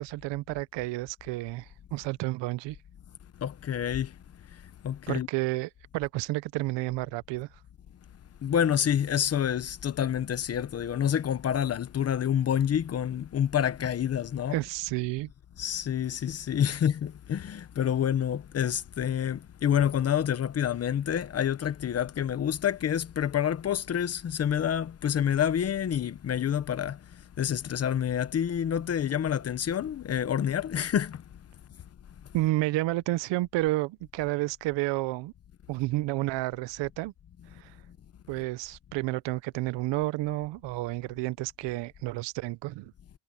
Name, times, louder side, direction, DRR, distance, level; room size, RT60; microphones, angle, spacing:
voice 1, 0.0-2.8 5.1-7.5 14.5-15.3 32.3-35.3 35.7-37.1 37.6-37.7 38.3-42.9, right 19 dB, 85° right, 0.7 m, -31 dB
voice 2, 3.4-4.1 4.8-5.3 8.4-14.6 15.6-27.0 27.4-31.2, left 9 dB, 35° left, 1.0 m, -28 dB
cardioid pair, 155°, 42 cm